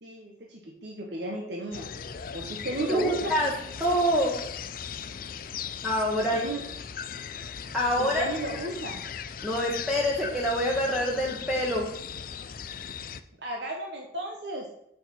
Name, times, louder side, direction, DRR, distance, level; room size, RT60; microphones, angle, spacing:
voice 1, 0.0-1.9 2.3-3.3 6.3-6.6 8.0-9.0 13.4-14.7, right 1 dB, 80° right, 1 dB, 1.2 m, -34 dB
sound 1, 1.7-13.2, left 7 dB, 50° left, 0.4 m, -38 dB
voice 2, 2.8-3.5 3.8-4.3 5.8-6.4 7.7-8.3 9.4-11.8, equal, ahead, -3 dB, 1.2 m, -26 dB
7.9 x 6.6 x 4.5 m, 0.79 s
head